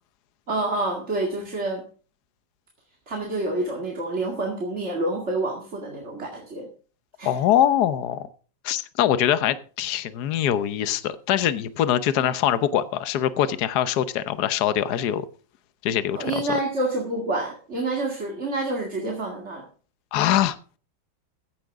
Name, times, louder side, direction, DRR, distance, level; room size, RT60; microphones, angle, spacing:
voice 1, 0.5-1.9 3.1-6.7 7.2-7.4 16.2-19.7, right 2 dB, 35° right, 2.4 m, -28 dB
voice 2, 7.2-8.2 8.6-15.3 15.8-16.2 20.1-20.6, left 11 dB, 60° left, 1.3 m, -23 dB
15.0 x 10.5 x 3.6 m
omnidirectional pair, 2.1 m